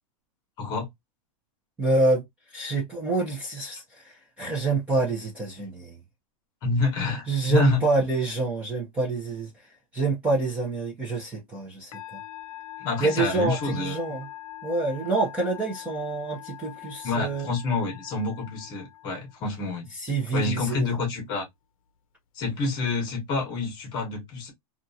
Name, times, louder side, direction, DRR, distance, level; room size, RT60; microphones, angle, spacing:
voice 1, 0.6-0.9 6.6-7.8 12.8-14.0 17.0-19.9 20.3-21.5 22.3-24.5, left 3 dB, 20° left, 1.1 m, -27 dB
voice 2, 1.8-2.2 2.5-6.0 7.3-9.5 9.9-12.2 13.0-14.3 14.6-17.5 19.9-20.9, right 3 dB, 5° right, 0.6 m, -27 dB
Musical instrument, 11.9-19.5, left 14 dB, 60° left, 0.7 m, -42 dB
2.9 x 2.4 x 2.6 m
supercardioid pair, 170°, 19 cm